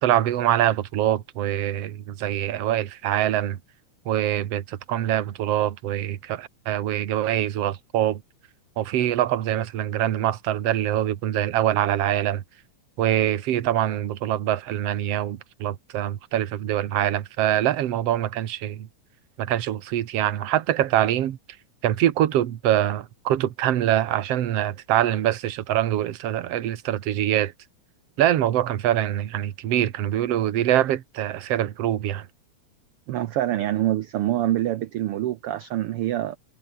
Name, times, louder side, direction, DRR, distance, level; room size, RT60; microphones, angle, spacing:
voice 1, 0.0-3.6 4.1-8.2 8.8-12.4 13.0-18.9 19.4-21.4 21.8-27.5 28.2-32.3, right 12 dB, 60° right, 2.2 m, -24 dB
voice 2, 33.1-36.4, right 13 dB, 80° right, 1.3 m, -25 dB
omnidirectional pair, 3.5 m